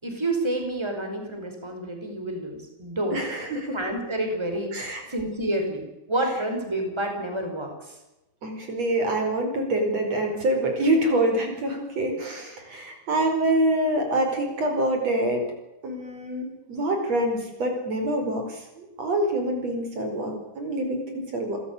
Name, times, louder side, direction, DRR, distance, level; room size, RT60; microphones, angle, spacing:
voice 1, 0.0-3.2 3.7-8.0, right 1 dB, 10° right, 4 dB, 5.4 m, -29 dB
voice 2, 3.1-3.8 4.7-5.0 6.2-6.4 8.4-15.5 15.8-21.6, right 1 dB, 60° right, 4 dB, 6.1 m, -26 dB
29.5 x 15.5 x 9.8 m, 0.96 s
omnidirectional pair, 3.4 m